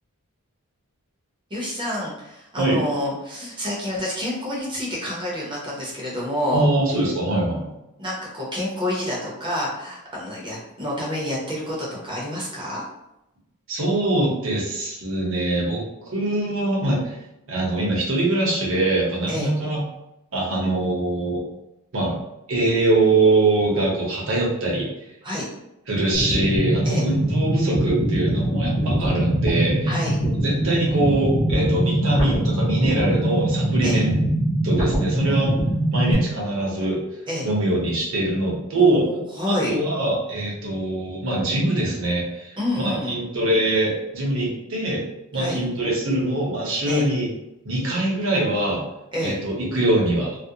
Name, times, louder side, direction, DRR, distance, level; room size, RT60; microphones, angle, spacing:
voice 1, 1.5-6.7 8.0-12.8 19.3-19.5 25.2-25.5 26.8-27.0 29.9-30.1 33.8-34.0 37.3-37.5 38.7-39.7 42.6-43.1 45.3-45.6 46.8-47.1 49.1-49.4, left 1 dB, 20° right, -5 dB, 0.7 m, -28 dB
voice 2, 6.5-7.7 13.7-17.2 17.5-19.9 20.3-21.4 21.9-22.2 22.5-24.9 25.9-29.9 30.4-34.1 34.6-35.5 35.9-37.0 37.4-39.0 39.5-45.0 45.3-47.3 47.6-48.8 49.2-50.3, right 2 dB, 60° right, -4 dB, 0.8 m, -23 dB
sound 1, 26.1-36.1, right 1 dB, 20° left, 0.5 m, -22 dB
2.4 x 2.1 x 2.7 m, 0.88 s
head